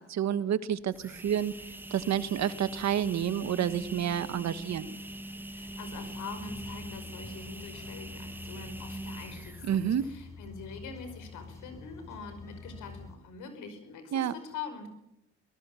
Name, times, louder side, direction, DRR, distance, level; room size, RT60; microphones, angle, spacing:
voice 1, 0.0-1.5 1.9-4.9 9.6-10.0 14.1-14.3, right 9 dB, 65° right, 14 dB, 1.4 m, -29 dB
sound 1, 0.8-10.3, right 1 dB, 5° right, 1.3 m, -43 dB
voice 2, 5.5-14.9, left 5 dB, 85° left, 8 dB, 5.3 m, -44 dB
sound 2, 6.4-13.1, left 4 dB, 10° left, 5.2 m, -47 dB
23.5 x 18.5 x 7.1 m, 0.83 s
cardioid pair, 90°, 30 cm